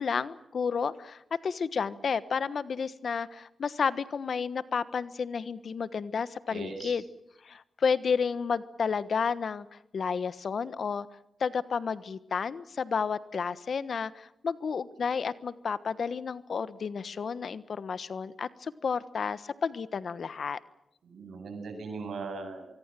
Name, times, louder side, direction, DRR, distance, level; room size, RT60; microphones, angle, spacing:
voice 1, 0.0-7.0 7.4-11.1 11.4-20.6, left 6 dB, 65° left, 15 dB, 1.2 m, -31 dB
voice 2, 6.5-6.9 21.0-22.7, right 4 dB, 80° right, 6 dB, 7.7 m, -39 dB
24.5 x 24.5 x 7.6 m, 0.84 s
cardioid pair, 50°, 0 cm